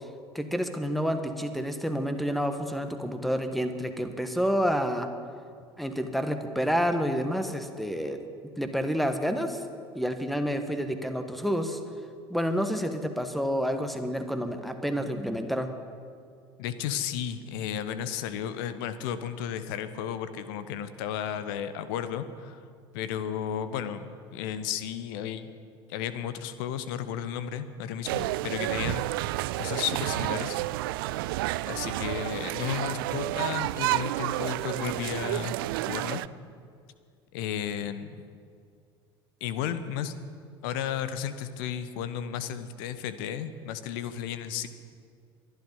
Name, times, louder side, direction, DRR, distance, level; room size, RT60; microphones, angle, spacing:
voice 1, 0.3-5.1 5.8-8.2 8.6-9.6 9.9-11.8 12.3-15.7, equal, ahead, 7 dB, 1.5 m, -29 dB
voice 2, 16.6-22.6 22.9-25.5 25.9-29.0 29.6-30.6 31.7-35.6 35.9-36.2 37.3-38.1 39.4-40.1 40.6-44.7, left 9 dB, 60° left, 12 dB, 1.0 m, -33 dB
sound 1, 28.1-36.3, right 17 dB, 60° right, 0.4 m, -30 dB
22.5 x 11.5 x 5.5 m, 2.2 s
figure-of-eight pair, 65°, 13 cm